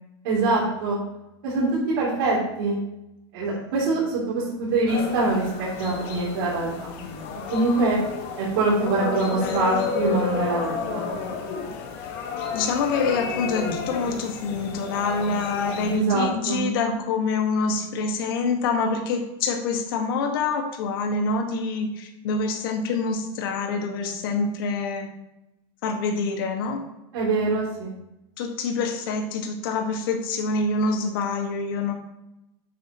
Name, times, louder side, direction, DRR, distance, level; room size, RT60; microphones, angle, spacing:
voice 1, 0.2-1.0 1.4-1.7 2.0-2.8 3.3-6.7 7.5-8.0 8.4-11.1 15.9-16.6 27.1-27.9, right 3 dB, 60° right, -7 dB, 3.2 m, -24 dB
voice 2, 3.4-3.7 9.2-9.8 12.5-25.1 25.8-26.8 28.4-31.9, left 4 dB, 55° left, 3 dB, 1.8 m, -26 dB
sound 1, 4.9-16.0, left 5 dB, 35° left, 1.4 m, -31 dB
9.4 x 8.3 x 3.1 m, 0.89 s
supercardioid pair, 175°, 14 cm